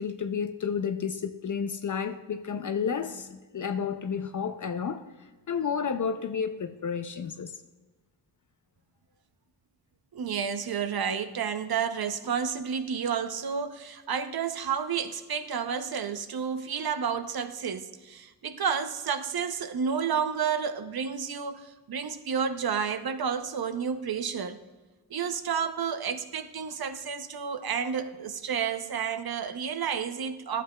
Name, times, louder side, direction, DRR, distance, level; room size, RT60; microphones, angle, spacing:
voice 1, 0.0-5.0 5.5-7.6, left 6 dB, 45° left, 0.5 m, -31 dB
voice 2, 10.1-24.6 25.1-30.6, right 7 dB, 60° right, 0.7 m, -31 dB
11.5 x 7.7 x 2.2 m
cardioid pair, 65°, 43 cm